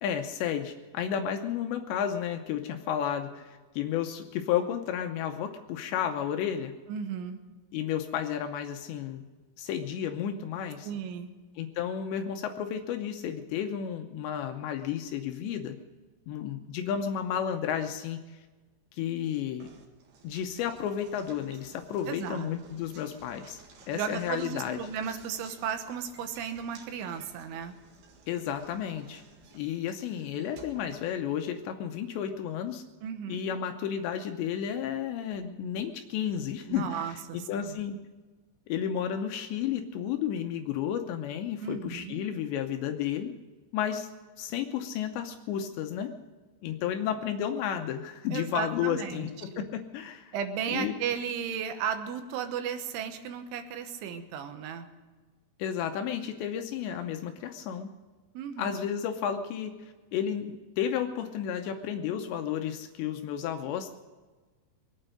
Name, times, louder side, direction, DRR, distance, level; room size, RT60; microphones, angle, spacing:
voice 1, 0.0-6.7 7.7-9.3 9.6-10.9 11.6-15.8 16.3-18.4 18.9-19.7 20.2-23.6 23.9-24.8 28.3-29.2 29.5-32.8 33.3-38.0 38.7-43.3 43.7-44.1 44.4-46.1 46.6-50.3 50.7-51.0 55.6-57.9 58.6-63.9, left 9 dB, 80° left, 6 dB, 2.7 m, -32 dB
voice 2, 6.9-7.4 10.8-11.3 22.1-22.5 23.9-27.7 33.0-33.4 36.7-37.8 41.6-42.2 48.3-49.6 50.3-54.9 58.3-58.7, right 8 dB, 80° right, 8 dB, 3.4 m, -35 dB
Knock, 19.6-31.7, right 4 dB, 60° right, 3.4 m, -55 dB
23.0 x 9.0 x 6.5 m, 1.3 s
omnidirectional pair, 5.6 m